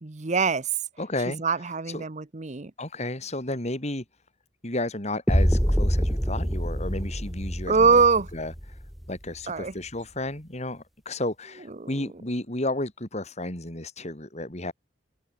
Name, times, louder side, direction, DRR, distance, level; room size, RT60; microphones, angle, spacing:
voice 1, 0.0-0.7 1.4-2.7 7.7-8.3 9.5-9.7 11.8-11.9, right 5 dB, 40° right, 0.9 m, -23 dB
voice 2, 1.0-1.4 1.8-2.0 2.8-4.0 4.6-8.0 8.3-8.8 9.1-14.7, left 1 dB, 40° left, 4.4 m, -32 dB
sound 1, 5.3-9.3, equal, ahead, 0.8 m, -25 dB
head